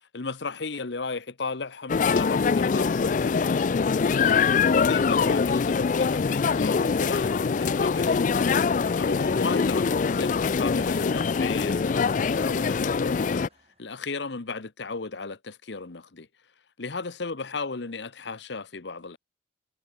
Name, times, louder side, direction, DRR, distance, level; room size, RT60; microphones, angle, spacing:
voice 1, 0.1-13.5 13.8-16.3 16.8-19.2, left 4 dB, 75° left, 1.0 m, -35 dB
sound 1, 1.9-13.5, left 5 dB, 45° left, 0.4 m, -23 dB
Train, 3.5-14.0, right 4 dB, 35° right, 4.7 m, -61 dB
head